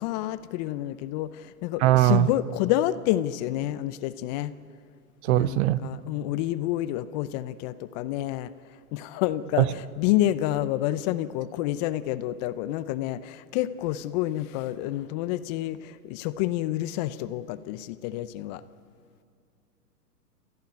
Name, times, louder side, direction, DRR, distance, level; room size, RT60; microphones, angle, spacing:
voice 1, 0.0-4.5 5.3-8.5 8.9-18.6, left 14 dB, 25° left, 14 dB, 0.6 m, -29 dB
voice 2, 1.8-2.3 5.2-5.9 9.6-9.7, right 15 dB, 45° right, 18 dB, 0.7 m, -20 dB
28.0 x 14.5 x 9.4 m, 2.2 s
hypercardioid pair, 115°, 49 cm